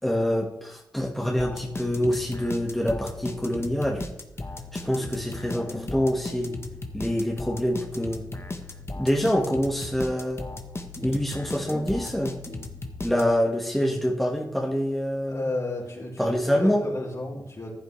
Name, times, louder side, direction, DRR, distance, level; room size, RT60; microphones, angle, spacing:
voice 1, 0.0-4.0 4.7-6.5 6.9-8.2 9.0-10.4 11.0-12.3 13.0-15.4 16.2-16.8, equal, 5° left, -1 dB, 1.8 m, -26 dB
sound 1, 1.4-13.6, left 2 dB, 35° left, 1.3 m, -36 dB
voice 2, 15.3-17.7, left 2 dB, 50° left, -4 dB, 4.2 m, -33 dB
14.5 x 8.2 x 3.4 m, 0.82 s
cardioid pair, 55°, 7 cm